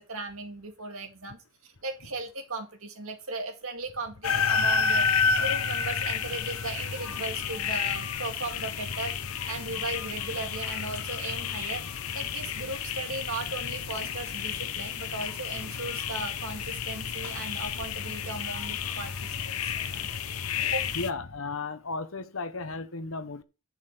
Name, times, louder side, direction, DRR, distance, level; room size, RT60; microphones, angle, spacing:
voice 1, 0.1-5.1 5.4-9.1 9.5-11.8 12.1-19.7 20.0-20.1 20.6-20.8, right 3 dB, 75° right, 2.1 m, -37 dB
sound 1, 4.2-21.1, left 6 dB, 90° left, 0.9 m, -30 dB
voice 2, 20.9-23.4, left 3 dB, 70° left, 1.1 m, -34 dB
11.0 x 6.4 x 5.0 m
head